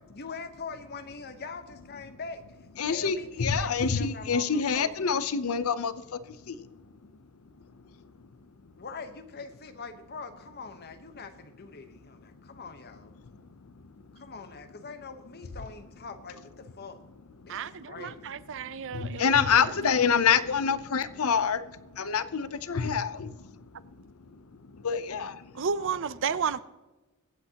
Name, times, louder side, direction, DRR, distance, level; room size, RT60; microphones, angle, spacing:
voice 1, 0.0-2.4 2.9-4.9 8.8-13.1 14.1-17.0 17.4-17.6 17.9-18.3 23.7-23.9 25.6-26.4, left 4 dB, 45° left, 1.1 m, -43 dB
voice 2, 2.8-6.7 18.8-21.7 21.9-23.4 24.7-25.6, left 6 dB, 75° left, 0.6 m, -26 dB
voice 3, 17.5-19.7 25.5-26.6, right 6 dB, 60° right, 0.5 m, -32 dB
24.0 x 8.1 x 2.9 m
head